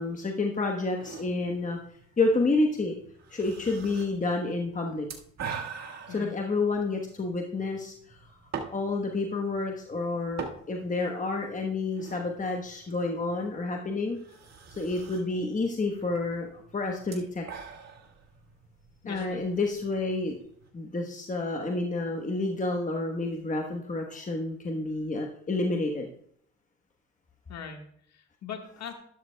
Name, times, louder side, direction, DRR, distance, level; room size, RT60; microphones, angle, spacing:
voice 1, 0.0-1.8 2.2-2.9 3.3-5.1 6.1-8.2 8.7-14.2 14.7-17.4 19.0-20.4 20.7-26.1, left 3 dB, 25° left, 1 dB, 1.2 m, -29 dB
sound 1, 1.0-20.7, right 6 dB, 60° right, 1.7 m, -45 dB
voice 2, 19.0-19.4 27.5-28.9, left 6 dB, 60° left, 4 dB, 1.6 m, -41 dB
12.5 x 12.0 x 2.3 m, 0.66 s
cardioid pair, 90°, 30 cm